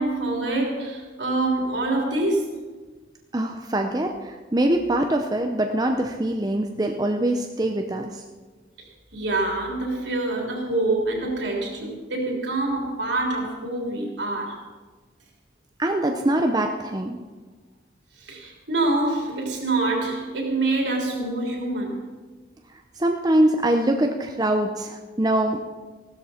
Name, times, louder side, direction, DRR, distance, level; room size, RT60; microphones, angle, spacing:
voice 1, 0.0-2.6 9.1-14.6 18.2-22.0, right 2 dB, 75° right, 0 dB, 3.3 m, -26 dB
voice 2, 3.3-8.2 15.8-17.2 23.0-25.6, right 1 dB, 20° right, 3 dB, 0.6 m, -23 dB
16.0 x 12.5 x 4.4 m, 1.3 s
head